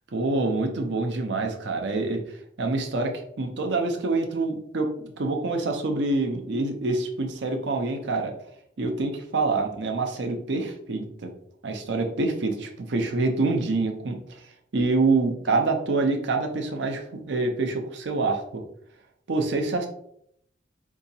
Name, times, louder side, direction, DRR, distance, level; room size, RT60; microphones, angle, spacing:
voice 1, 0.1-2.2 2.6-4.9 5.2-8.3 8.8-11.3 11.6-14.2 14.7-18.6 19.3-19.9, right 3 dB, 65° right, 3 dB, 0.6 m, -26 dB
4.7 x 2.7 x 2.7 m, 0.69 s
head